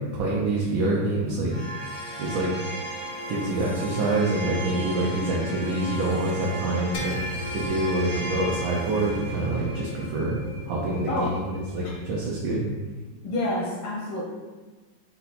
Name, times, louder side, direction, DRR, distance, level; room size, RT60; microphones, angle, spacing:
voice 1, 0.1-1.5 2.2-2.5 3.3-7.2 7.5-10.4 10.7-12.6, right 2 dB, 75° right, -4 dB, 1.5 m, -26 dB
sound 1, 1.5-12.5, right 1 dB, 30° right, 0.6 m, -36 dB
sound 2, 6.9-12.6, left 2 dB, 65° left, 1.1 m, -39 dB
voice 2, 11.1-11.4 13.2-14.2, left 1 dB, 85° left, -3 dB, 1.6 m, -28 dB
4.6 x 2.8 x 4.1 m, 1.3 s
omnidirectional pair, 2.2 m